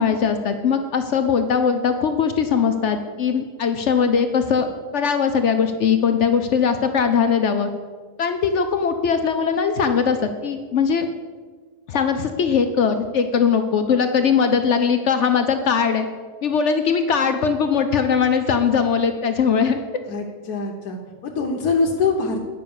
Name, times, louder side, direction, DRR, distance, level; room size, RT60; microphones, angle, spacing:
voice 1, 0.0-4.7 4.9-7.7 8.2-11.1 11.9-16.1 16.4-19.8, left 6 dB, 60° left, 7 dB, 0.8 m, -20 dB
voice 2, 20.0-22.4, left 4 dB, 80° left, 0 dB, 1.5 m, -24 dB
9.5 x 5.6 x 7.0 m, 1.5 s
omnidirectional pair, 1.6 m